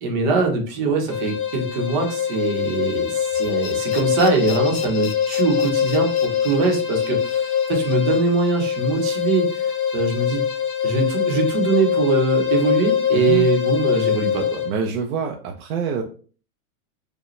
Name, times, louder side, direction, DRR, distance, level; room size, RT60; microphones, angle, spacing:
voice 1, 0.0-9.5 9.9-10.4 10.8-14.6, right 4 dB, 35° right, 2 dB, 0.9 m, -22 dB
sound 1, 1.1-14.7, left 8 dB, 20° left, 0.4 m, -23 dB
sound 2, 3.3-10.2, left 8 dB, 80° left, 0.7 m, -40 dB
voice 2, 13.1-13.5 14.6-16.0, right 6 dB, 85° right, 2 dB, 0.8 m, -26 dB
5.0 x 2.3 x 3.1 m, 0.40 s
supercardioid pair, 170°, 42 cm